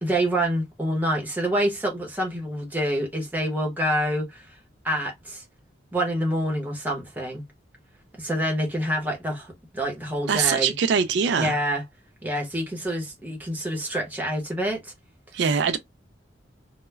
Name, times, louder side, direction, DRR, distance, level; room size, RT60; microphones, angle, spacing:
voice 1, 0.0-4.5 4.8-5.4 5.9-7.4 8.2-10.7 11.4-11.8 12.2-14.9, equal, 10° right, 0.8 m, -27 dB
voice 2, 10.3-11.6 15.3-15.8, right 6 dB, 65° right, 0.3 m, -22 dB
2.2 x 2.1 x 3.1 m
head